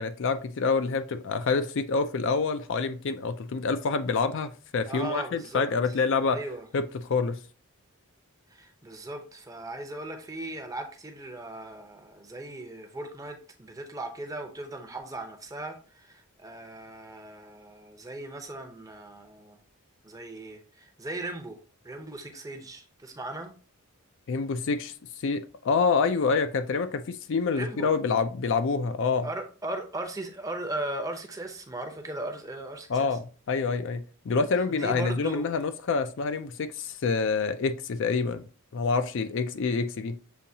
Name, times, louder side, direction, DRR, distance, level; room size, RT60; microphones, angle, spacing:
voice 1, 0.0-6.4 6.7-7.4 24.3-24.9 25.2-29.3 32.9-33.2 33.5-38.5 38.7-40.2, left 4 dB, 60° left, 0.4 m, -27 dB
voice 2, 4.9-5.7 6.3-6.7 8.5-19.6 20.0-21.6 21.8-23.5 27.5-28.0 29.2-33.2 34.7-35.5, right 2 dB, 15° right, 0.7 m, -38 dB
6.9 x 2.8 x 2.7 m
head